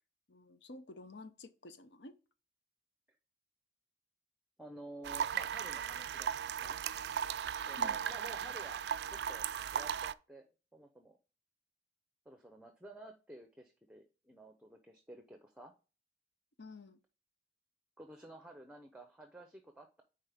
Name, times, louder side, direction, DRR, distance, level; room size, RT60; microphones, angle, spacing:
voice 1, 0.3-2.2 7.8-8.0 16.6-17.0, left 2 dB, 75° left, 0.8 m, -51 dB
voice 2, 4.6-6.8 7.7-8.8 9.1-9.5 9.7-11.2 12.3-15.8 18.0-20.0, right 1 dB, 5° right, 0.7 m, -53 dB
sound 1, 5.0-10.1, right 8 dB, 60° right, 0.3 m, -37 dB
9.5 x 4.0 x 3.5 m
head